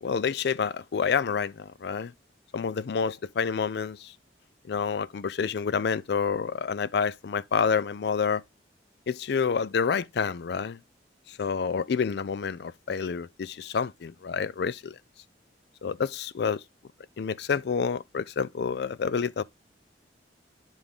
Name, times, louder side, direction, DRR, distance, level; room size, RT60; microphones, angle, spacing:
voice 1, 0.0-2.1 2.5-4.1 4.7-8.4 9.1-10.8 11.3-14.9 15.8-16.6 17.2-19.4, left 6 dB, 65° left, 0.4 m, -28 dB
9.8 x 3.5 x 3.6 m
head